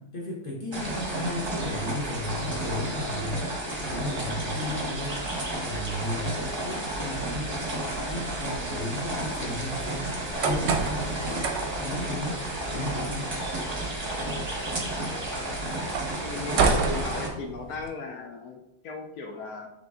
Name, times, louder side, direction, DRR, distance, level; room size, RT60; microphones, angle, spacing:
voice 1, 0.0-3.4 3.8-11.5 11.8-12.5 12.7-13.3, left 1 dB, 50° left, -4 dB, 0.7 m, -35 dB
sound 1, 0.7-17.3, right 1 dB, 30° right, 0.5 m, -32 dB
sound 2, 10.1-17.9, right 5 dB, 85° right, 1.3 m, -31 dB
voice 2, 16.2-19.7, left 4 dB, 70° left, 2 dB, 0.9 m, -36 dB
3.9 x 3.2 x 3.4 m, 0.87 s
omnidirectional pair, 1.9 m